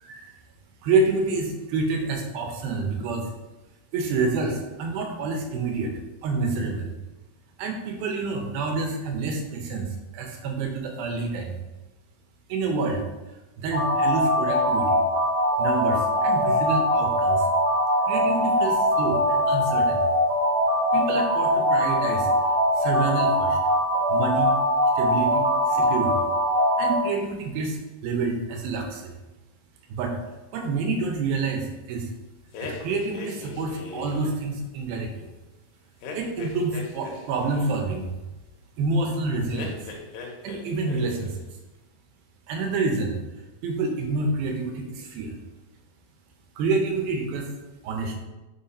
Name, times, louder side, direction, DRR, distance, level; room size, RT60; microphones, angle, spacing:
voice 1, 0.8-3.3 3.9-5.9 6.2-6.9 7.6-11.6 12.5-13.0 13.6-15.0 15.6-17.5 18.1-20.1 20.9-22.3 22.8-23.6 24.1-24.5 25.0-26.3 26.8-29.2 29.9-30.2 30.5-32.1 32.6-35.3 36.2-38.1 38.8-39.8 40.4-41.4 42.5-43.2 43.6-45.4 46.6-47.5 47.8-48.2, right 3 dB, 85° right, 3 dB, 2.7 m, -28 dB
sound 1, 13.7-27.0, equal, 60° right, 2.6 m, -22 dB
sound 2, 32.5-34.4 36.0-37.8 39.5-40.6 40.9-41.4, left 4 dB, 75° left, 2.6 m, -38 dB
6.0 x 4.0 x 4.2 m, 1.1 s
omnidirectional pair, 4.2 m